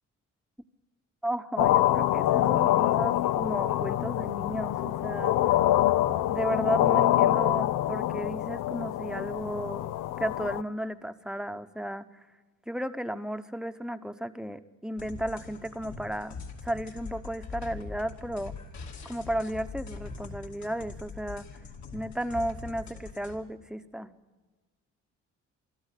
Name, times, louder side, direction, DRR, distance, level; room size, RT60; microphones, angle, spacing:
voice 1, 1.2-5.4 6.3-9.9 10.2-12.0 12.7-16.4 16.6-18.5 19.0-21.4 21.9-24.1, right 1 dB, ahead, 10 dB, 0.9 m, -34 dB
sound 1, 1.6-10.6, left 13 dB, 90° left, 0.6 m, -25 dB
sound 2, 15.0-23.4, left 4 dB, 65° left, 2.7 m, -42 dB
24.5 x 13.0 x 8.2 m, 1.3 s
cardioid pair, 90°, 30 cm